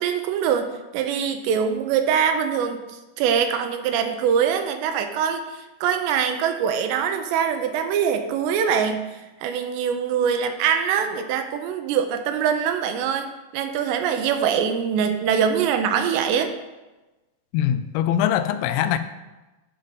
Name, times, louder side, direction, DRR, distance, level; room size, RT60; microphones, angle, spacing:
voice 1, 0.0-13.3 13.5-16.5, right 7 dB, 80° right, 7 dB, 2.7 m, -23 dB
voice 2, 17.5-19.0, left 10 dB, 90° left, 11 dB, 2.9 m, -22 dB
10.5 x 3.7 x 5.3 m, 1.1 s
omnidirectional pair, 5.1 m